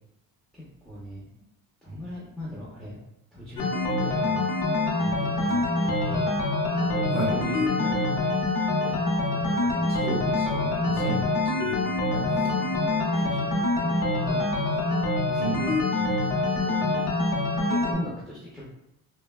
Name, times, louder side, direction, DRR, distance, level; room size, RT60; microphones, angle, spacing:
voice 1, 0.5-1.4 1.8-3.0 3.3-4.5 5.0-6.3 6.7-8.3 8.8-10.3 10.9-11.2 11.5-11.6 12.2-17.0 17.6-18.7, left 1 dB, ahead, -7 dB, 0.5 m, -39 dB
sound 1, 3.6-17.9, left 2 dB, 70° left, 0.7 m, -25 dB
voice 2, 9.9-12.5 15.3-15.8, right 2 dB, 20° right, -4 dB, 1.1 m, -33 dB
3.2 x 2.1 x 2.3 m, 0.85 s
cardioid pair, 140°, 34 cm